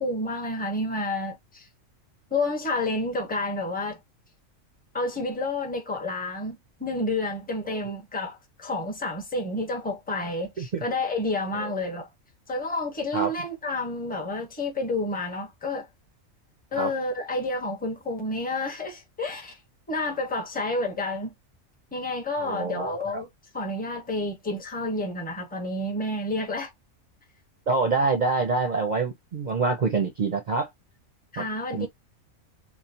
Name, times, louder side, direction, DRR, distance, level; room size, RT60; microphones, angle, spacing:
voice 1, 0.0-1.7 2.3-4.0 4.9-12.1 12.5-15.9 16.7-19.6 19.9-21.3 21.9-23.3 23.5-26.7 31.3-31.9, left 2 dB, 10° left, 0.6 m, -30 dB
voice 2, 22.4-22.9 27.7-30.7 31.4-31.5 31.7-31.9, right 4 dB, 50° right, 0.5 m, -26 dB
3.1 x 2.1 x 2.6 m
omnidirectional pair, 1.4 m